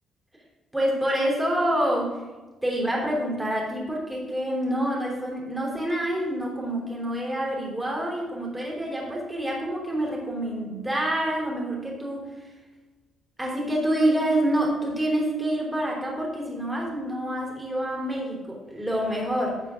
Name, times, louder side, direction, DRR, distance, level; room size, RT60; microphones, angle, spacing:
voice 1, 0.7-2.2 2.6-12.3 13.4-19.6, right 1 dB, 10° right, -2 dB, 3.2 m, -27 dB
12.0 x 7.0 x 3.7 m, 1.2 s
cardioid pair, 90°, 0 cm